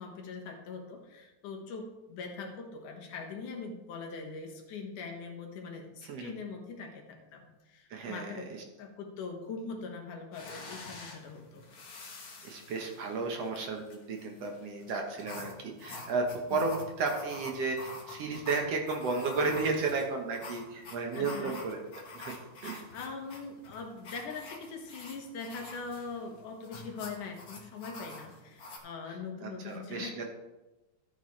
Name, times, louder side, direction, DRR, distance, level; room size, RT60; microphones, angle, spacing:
voice 1, 0.0-8.5 8.8-11.6 16.5-16.7 21.2-21.5 22.7-30.2, left 4 dB, 85° left, 2 dB, 3.0 m, -42 dB
voice 2, 6.0-6.3 7.9-8.6 12.4-22.4 22.6-22.8 29.4-30.2, right 3 dB, 60° right, 2 dB, 1.9 m, -33 dB
sound 1, 10.3-28.8, left 3 dB, 45° left, 1.3 m, -47 dB
13.0 x 9.2 x 3.2 m, 1.1 s
omnidirectional pair, 3.5 m